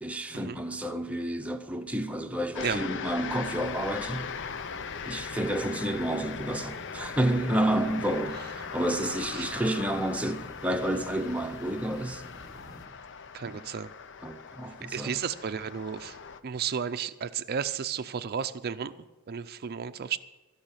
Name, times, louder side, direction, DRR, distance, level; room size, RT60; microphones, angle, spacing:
voice 1, 0.0-4.3 5.0-12.3 13.4-13.7 14.2-15.2, right 1 dB, 5° right, 0.7 m, -30 dB
sound 1, 2.5-16.4, left 6 dB, 55° left, 0.6 m, -40 dB
sound 2, 3.0-12.9, equal, 15° left, 1.3 m, -49 dB
voice 2, 13.3-13.9 14.9-16.1 16.4-18.9 19.3-20.2, right 7 dB, 45° right, 0.5 m, -33 dB
16.0 x 5.6 x 8.9 m
head